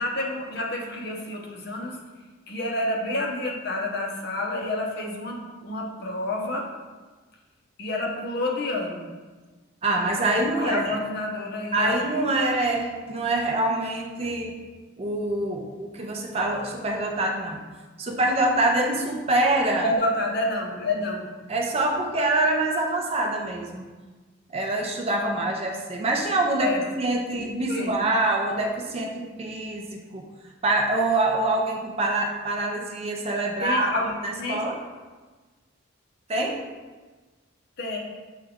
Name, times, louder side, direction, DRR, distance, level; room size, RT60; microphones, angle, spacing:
voice 1, 0.0-2.0 2.5-6.7 7.8-9.1 10.5-12.0 12.4-12.5 19.8-21.3 26.6-26.9 27.3-28.1 33.6-34.1 34.4-34.6 37.8-38.0, left 2 dB, 50° left, -1 dB, 0.7 m, -29 dB
voice 2, 9.8-10.9 11.7-14.6 15.0-17.6 18.0-19.9 21.5-23.9 24.5-30.3 30.6-33.9 34.2-34.8 36.3-36.6, right 2 dB, 30° right, 2 dB, 0.4 m, -25 dB
6.3 x 2.3 x 3.5 m, 1.3 s
head